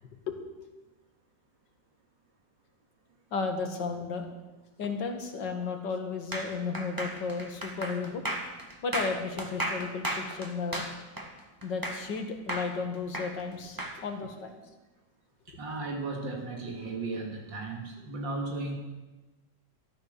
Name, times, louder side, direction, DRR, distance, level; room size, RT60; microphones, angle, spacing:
voice 1, 3.3-4.3 4.8-8.2 8.8-10.9 11.6-14.6, left 4 dB, 70° left, 4 dB, 2.4 m, -34 dB
sound 1, 6.3-12.2 12.5-14.0, right 1 dB, 10° right, 1.7 m, -34 dB
voice 2, 15.5-18.8, right 3 dB, 80° right, 1 dB, 2.6 m, -35 dB
13.0 x 13.0 x 6.7 m, 1.1 s
omnidirectional pair, 2.0 m